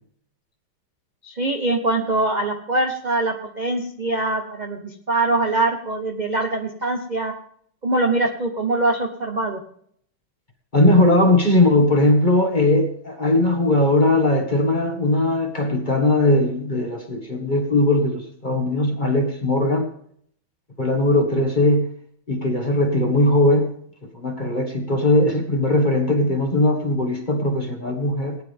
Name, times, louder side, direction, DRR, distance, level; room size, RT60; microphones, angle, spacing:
voice 1, 1.2-7.3 7.8-9.6, right 2 dB, 30° right, 3 dB, 0.9 m, -23 dB
voice 2, 10.7-19.9 20.8-21.9 22.3-23.7 24.1-28.4, left 1 dB, 25° left, 4 dB, 1.6 m, -19 dB
18.5 x 10.0 x 3.6 m, 0.63 s
omnidirectional pair, 2.3 m